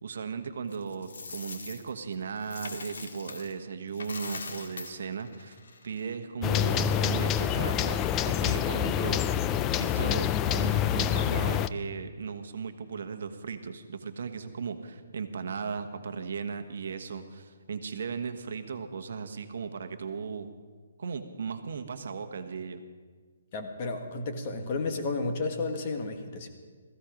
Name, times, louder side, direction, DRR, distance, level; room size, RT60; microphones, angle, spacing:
voice 1, 0.0-5.6 5.8-9.2 9.8-20.5 21.0-22.8, right 5 dB, 60° right, 8 dB, 1.2 m, -37 dB
Coin (dropping), 0.7-3.6 3.9-6.2, left 4 dB, 75° left, 1.9 m, -42 dB
sound 1, 6.4-11.7, left 9 dB, 15° left, 0.3 m, -27 dB
voice 2, 23.5-26.5, left 3 dB, 30° left, 5 dB, 1.4 m, -32 dB
16.5 x 15.0 x 5.1 m, 1.5 s
hypercardioid pair, 170°, 0 cm